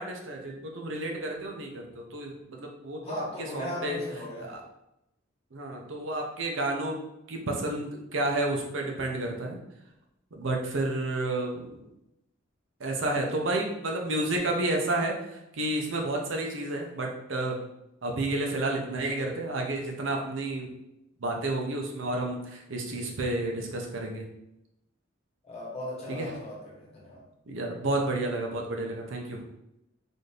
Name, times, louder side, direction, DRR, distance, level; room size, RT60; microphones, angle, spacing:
voice 1, 0.0-3.2 3.5-4.0 4.4-4.6 5.5-7.0 7.3-9.6 10.3-11.8 12.8-17.6 18.0-20.7 21.2-24.3 26.1-26.3 27.5-29.4, right 2 dB, 70° right, 1 dB, 0.7 m, -31 dB
voice 2, 3.0-4.5 22.9-23.2 25.4-27.2, left 1 dB, 35° left, -4 dB, 1.2 m, -38 dB
4.1 x 2.6 x 3.3 m, 0.84 s
head